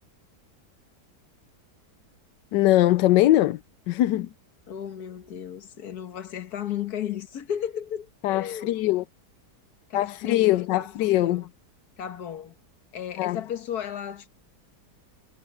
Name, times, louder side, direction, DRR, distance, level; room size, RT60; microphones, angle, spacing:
voice 1, 2.5-3.6 3.9-4.3 8.2-9.0 9.9-11.4 13.2-13.4, left 15 dB, 90° left, 1.3 m, -21 dB
voice 2, 4.7-8.7 9.9-11.5 12.0-12.6 12.9-14.3, left 9 dB, 65° left, 1.8 m, -34 dB
omnidirectional pair, 1.8 m